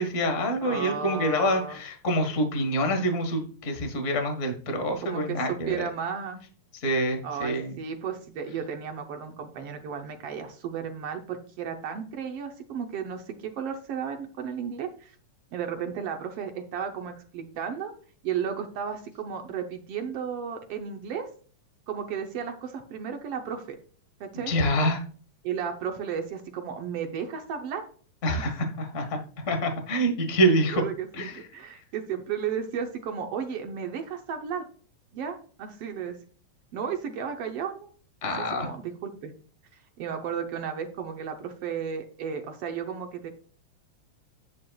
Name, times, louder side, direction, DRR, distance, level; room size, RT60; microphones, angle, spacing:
voice 1, 0.0-5.7 6.8-7.7 24.3-25.0 28.2-30.8 31.1-31.4 38.2-38.7, equal, 35° left, 5 dB, 1.2 m, -26 dB
voice 2, 0.6-1.8 5.0-6.4 7.2-15.2 15.5-17.9 18.2-21.3 21.9-23.8 24.2-24.5 25.4-27.8 28.4-28.5 30.7-34.7 35.1-36.2 36.7-37.9 38.4-39.3 39.7-43.3, right 7 dB, 70° right, 4 dB, 1.5 m, -34 dB
9.7 x 9.2 x 2.3 m, 0.43 s
omnidirectional pair, 3.4 m